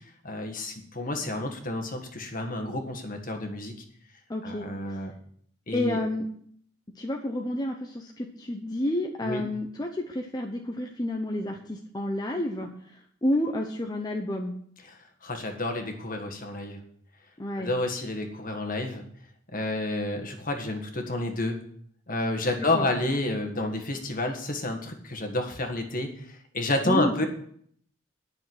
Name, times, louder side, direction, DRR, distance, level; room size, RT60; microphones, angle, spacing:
voice 1, 0.2-3.7 4.4-5.1 5.7-6.0 9.2-9.4 15.2-16.8 17.6-19.0 19.5-21.6 22.1-27.2, left 2 dB, 45° left, 5 dB, 1.7 m, -30 dB
voice 2, 4.3-5.0 5.7-6.3 6.9-14.5 17.4-17.7 22.6-22.9 26.8-27.2, left 1 dB, 20° left, 2 dB, 0.8 m, -30 dB
10.5 x 6.5 x 7.9 m, 0.65 s
head